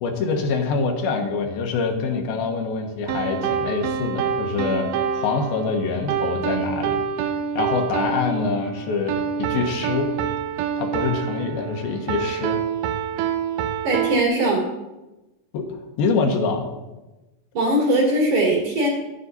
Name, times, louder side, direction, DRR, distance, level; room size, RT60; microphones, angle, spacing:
voice 1, 0.0-4.9 5.1-7.0 7.6-10.1 10.8-12.6 15.5-16.7, left 4 dB, 80° left, 3 dB, 3.0 m, -25 dB
sound 1, 3.1-14.2, right 7 dB, 80° right, 1.9 m, -27 dB
voice 2, 13.8-14.7 17.5-18.9, right 1 dB, 55° right, -4 dB, 4.3 m, -20 dB
11.5 x 9.8 x 4.1 m, 1.1 s
omnidirectional pair, 4.3 m